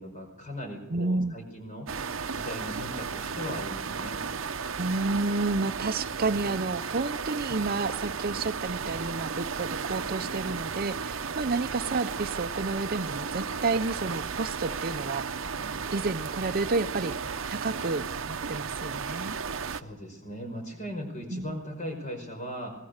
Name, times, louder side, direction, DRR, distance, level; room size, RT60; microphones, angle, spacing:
voice 1, 0.0-1.9 2.3-4.2 19.6-22.7, equal, 40° left, 4 dB, 5.4 m, -38 dB
voice 2, 0.9-1.4 4.7-15.2 15.9-17.1 17.5-19.3 21.3-21.6, right 3 dB, 45° right, 10 dB, 0.7 m, -30 dB
sound 1, 1.9-19.8, right 5 dB, 80° right, 0.8 m, -34 dB
24.5 x 19.5 x 6.6 m, 0.94 s
head